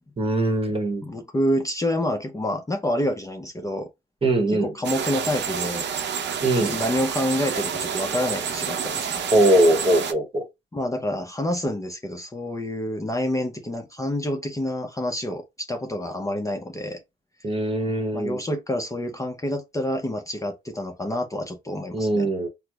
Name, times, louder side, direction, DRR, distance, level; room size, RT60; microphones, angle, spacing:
voice 1, 0.2-1.0 4.2-4.7 6.4-6.7 9.3-10.5 17.4-18.4 21.9-22.5, right 1 dB, 30° right, 0.9 m, -21 dB
voice 2, 1.0-3.9 4.5-5.9 6.6-9.3 10.7-17.0 18.1-22.3, left 1 dB, 15° left, 0.6 m, -28 dB
sound 1, 4.8-10.1, right 7 dB, 60° right, 0.6 m, -29 dB
4.4 x 2.0 x 2.3 m
cardioid pair, 90°, 20 cm